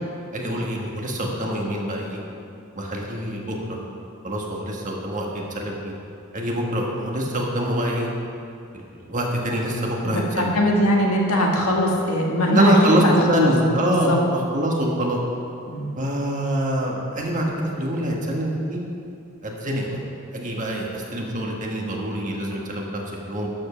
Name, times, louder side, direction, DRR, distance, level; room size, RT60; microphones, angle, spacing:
voice 1, 0.3-2.2 2.7-3.8 4.2-5.3 5.5-5.9 6.3-8.1 8.7-10.5 12.4-15.2 16.0-18.8 19.4-20.0 20.3-23.5, equal, 35° right, -1 dB, 1.5 m, -24 dB
voice 2, 10.1-13.5 13.9-14.2 15.7-15.9, left 1 dB, 85° left, -1 dB, 1.6 m, -21 dB
12.0 x 5.4 x 6.3 m, 2.5 s
head